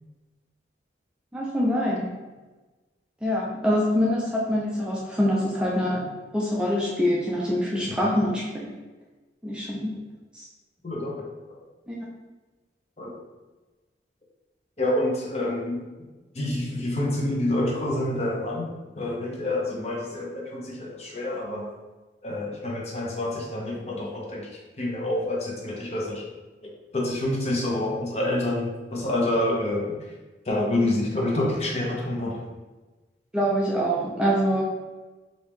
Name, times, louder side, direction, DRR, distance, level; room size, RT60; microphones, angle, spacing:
voice 1, 1.3-2.1 3.2-6.0 6.3-8.7 9.4-9.9 10.3-10.4 11.9-12.0 33.3-34.6, equal, 5° right, -5 dB, 0.4 m, -25 dB
voice 2, 10.8-11.6 13.0-13.1 14.8-15.8 16.3-21.7 22.2-24.5 24.8-26.2 26.6-30.1 30.5-32.4, left 1 dB, 35° left, -2 dB, 0.6 m, -28 dB
3.4 x 2.7 x 3.1 m, 1.2 s
head